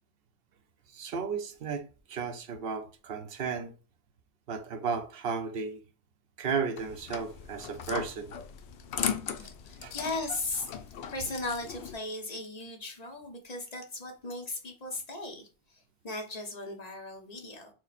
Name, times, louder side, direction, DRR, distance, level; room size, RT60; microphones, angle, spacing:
voice 1, 0.9-3.7 4.5-5.8 6.4-8.4 9.4-9.5 9.8-9.9, right 5 dB, 60° right, 0.8 m, -34 dB
sound 1, 6.8-11.9, left 8 dB, 75° left, 0.8 m, -38 dB
voice 2, 9.6-10.7 11.1-17.7, left 2 dB, 40° left, 1.0 m, -37 dB
4.5 x 2.1 x 4.1 m
omnidirectional pair, 1.1 m